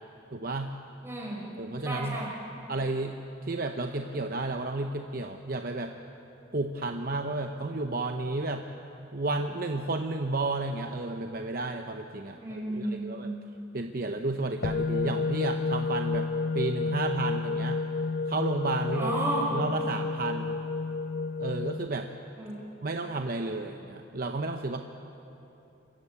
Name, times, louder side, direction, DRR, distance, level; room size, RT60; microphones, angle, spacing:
voice 1, 0.3-0.8 1.6-2.3 2.7-3.2 3.4-5.9 6.5-8.6 9.1-13.3 13.7-16.3 16.5-17.8 18.3-19.1 19.5-20.6 21.4-22.1 22.8-24.8, right 2 dB, 50° right, 5 dB, 0.8 m, -32 dB
voice 2, 1.0-1.5 1.8-2.3 12.3-13.3 18.9-19.5 22.4-22.5, right 1 dB, 15° right, -3 dB, 5.4 m, -32 dB
Tibetan singing bowl, 14.6-21.9, left 4 dB, 50° left, 0.4 m, -30 dB
27.5 x 14.5 x 8.3 m, 2.9 s
head